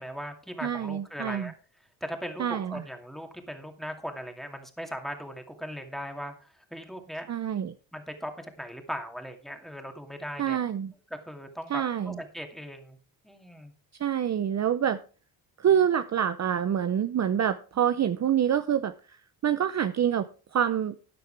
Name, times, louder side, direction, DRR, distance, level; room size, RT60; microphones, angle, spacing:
voice 1, 0.0-1.5 2.0-6.3 6.7-7.3 7.9-10.6 11.1-13.0 13.2-13.7, equal, ahead, 4 dB, 2.3 m, -38 dB
voice 2, 0.6-1.5 2.4-2.8 7.3-7.7 10.4-10.9 11.7-12.2 14.0-15.0 15.6-19.2 19.4-20.9, right 9 dB, 40° right, 11 dB, 0.7 m, -26 dB
13.5 x 9.1 x 3.4 m, 0.38 s
cardioid pair, 85°, 44 cm